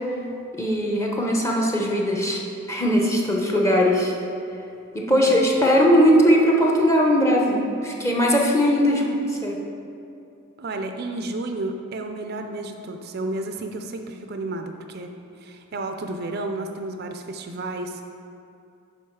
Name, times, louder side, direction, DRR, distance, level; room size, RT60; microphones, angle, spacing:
voice 1, 0.5-2.4 2.7-4.1 4.9-9.0 9.4-9.6, equal, 15° left, -1 dB, 0.9 m, -19 dB
voice 2, 10.6-15.1 15.4-18.0, right 2 dB, 45° right, 5 dB, 0.4 m, -32 dB
9.3 x 5.7 x 4.7 m, 2.6 s
head